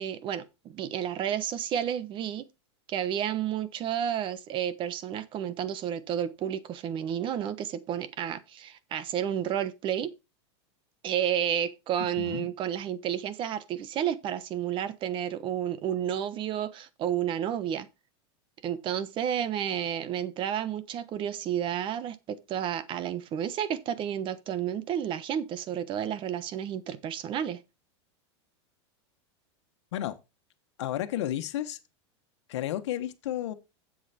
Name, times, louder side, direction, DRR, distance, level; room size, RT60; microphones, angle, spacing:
voice 1, 0.0-2.4 2.9-10.1 11.0-17.9 18.6-27.6, right 9 dB, 35° right, 1.1 m, -31 dB
voice 2, 12.0-12.5 29.9-30.2 30.8-31.8 32.5-33.5, left 12 dB, 80° left, 1.3 m, -32 dB
7.9 x 7.5 x 4.3 m
supercardioid pair, 140°, 15 cm